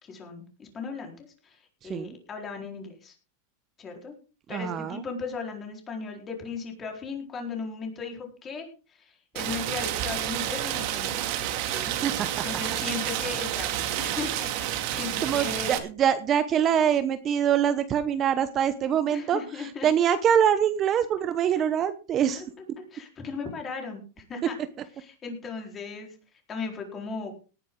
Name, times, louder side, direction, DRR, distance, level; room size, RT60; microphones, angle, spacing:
voice 1, 0.0-3.1 3.8-4.1 4.5-11.2 11.6-11.9 12.4-15.8 19.1-19.9 21.6-21.7 22.4-22.5 22.9-24.6 25.0-26.2 26.5-27.3, left 4 dB, 20° left, 3 dB, 4.3 m, -37 dB
voice 2, 4.5-5.0 11.9-12.4 14.9-19.4 19.8-22.4, right 9 dB, 30° right, 12 dB, 1.0 m, -24 dB
Rain, 9.4-15.8, right 11 dB, 50° right, 2.5 m, -30 dB
18.5 x 10.0 x 3.8 m, 0.34 s
supercardioid pair, 145°, 0 cm